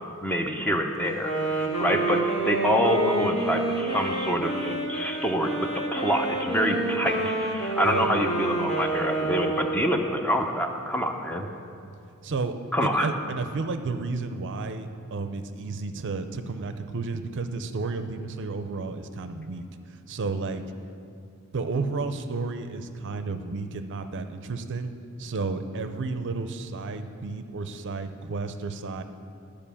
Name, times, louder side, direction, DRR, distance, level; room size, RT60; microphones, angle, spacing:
voice 1, 0.2-5.6 5.9-11.5 12.7-13.1, equal, 5° left, 4 dB, 0.6 m, -26 dB
Wind instrument woodwind instrument, 1.1-10.0, right 2 dB, 60° left, 1.7 m, -28 dB
voice 2, 12.2-12.6 12.8-19.6 20.1-20.6 21.5-24.9 25.2-29.0, right 3 dB, 55° right, 9 dB, 0.5 m, -32 dB
11.5 x 5.1 x 7.0 m, 2.4 s
head